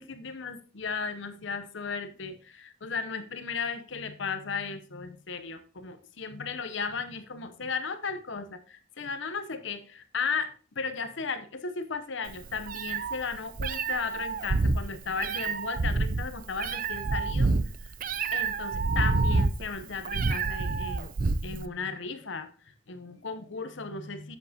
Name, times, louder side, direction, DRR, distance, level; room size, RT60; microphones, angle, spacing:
voice 1, 0.0-17.5 17.8-17.9 18.3-21.1 21.4-22.5 22.9-24.4, left 5 dB, 65° left, 0.8 m, -35 dB
Meow, 12.3-21.6, right 3 dB, 45° right, 0.5 m, -28 dB
10.0 x 8.3 x 2.8 m
head